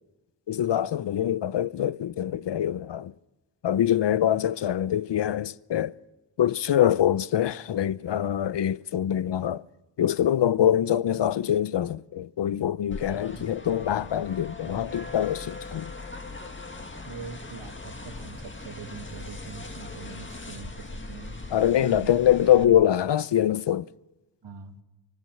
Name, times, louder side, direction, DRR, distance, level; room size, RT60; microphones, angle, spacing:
voice 1, 0.5-3.1 3.6-5.9 6.4-9.6 10.0-15.9 21.5-23.9, left 10 dB, 75° left, 0.7 m, -24 dB
sound 1, 12.9-22.6, left 3 dB, 30° left, 2.0 m, -40 dB
voice 2, 13.3-13.6 14.6-15.1 17.0-21.4 21.8-22.2 22.6-22.9 24.4-24.8, right 5 dB, 80° right, 2.2 m, -42 dB
24.5 x 16.0 x 7.6 m
wide cardioid pair, 80°, 42 cm